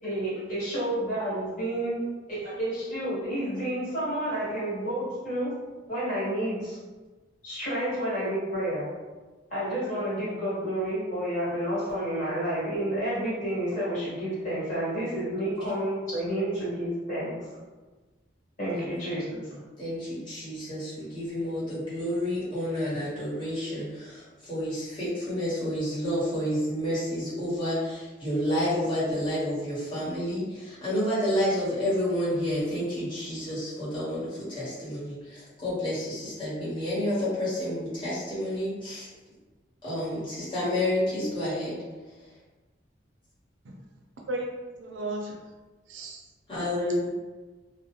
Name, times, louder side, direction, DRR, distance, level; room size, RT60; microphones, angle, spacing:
voice 1, 0.0-2.0 2.3-5.5 5.9-6.8 7.4-8.9 9.5-17.4 18.6-19.4, right 1 dB, 45° left, -10 dB, 1.4 m, -30 dB
voice 2, 19.8-39.1 39.8-41.7 46.5-47.1, left 1 dB, 25° left, -10 dB, 1.2 m, -30 dB
voice 3, 44.3-45.4 45.9-46.2, right 1 dB, 85° right, 0 dB, 0.5 m, -34 dB
2.3 x 2.1 x 2.9 m, 1.3 s
head